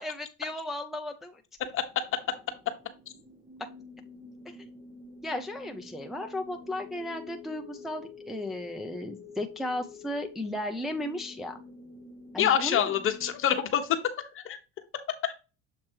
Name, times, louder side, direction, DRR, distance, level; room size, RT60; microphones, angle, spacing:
voice 1, 0.0-1.4 3.6-3.7 4.5-4.7 5.2-11.6 12.3-12.9, left 1 dB, ahead, 3 dB, 0.5 m, -35 dB
sound 1, 1.6-13.4, left 3 dB, 20° right, 1.5 m, -48 dB
voice 2, 12.4-14.6 14.9-15.3, left 9 dB, 40° left, 7 dB, 1.2 m, -27 dB
7.4 x 3.1 x 4.5 m, 0.31 s
cardioid pair, 120°, 32 cm